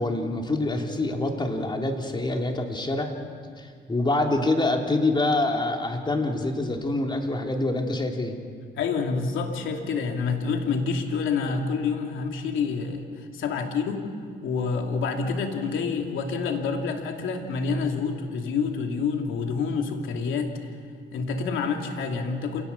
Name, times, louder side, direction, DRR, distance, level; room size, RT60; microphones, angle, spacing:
voice 1, 0.0-3.2 3.6-8.4, left 2 dB, 25° left, 2 dB, 3.2 m, -26 dB
voice 2, 8.8-14.1 14.4-20.5 21.1-22.6, left 5 dB, 85° left, 3 dB, 2.7 m, -28 dB
28.0 x 18.5 x 7.1 m, 2.1 s
cardioid pair, 90°, 20 cm